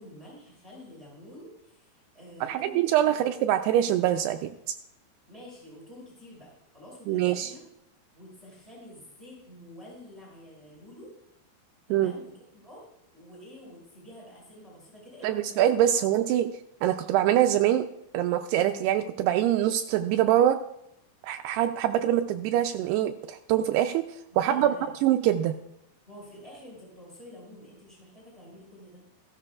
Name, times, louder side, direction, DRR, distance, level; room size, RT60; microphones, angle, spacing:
voice 1, 0.0-3.3 5.3-6.5 6.7-7.6 8.1-11.1 11.9-12.8 13.1-15.6 15.8-16.0 24.3-25.0 26.1-29.0, left 1 dB, 15° right, -4 dB, 4.4 m, -48 dB
voice 2, 2.4-4.5 7.1-7.5 11.9-12.1 15.2-16.5 16.8-17.9 18.1-20.6 21.2-24.1 24.4-24.7 25.0-25.5, right 11 dB, 90° right, 6 dB, 2.3 m, -24 dB
15.0 x 13.5 x 2.4 m, 0.81 s
omnidirectional pair, 5.2 m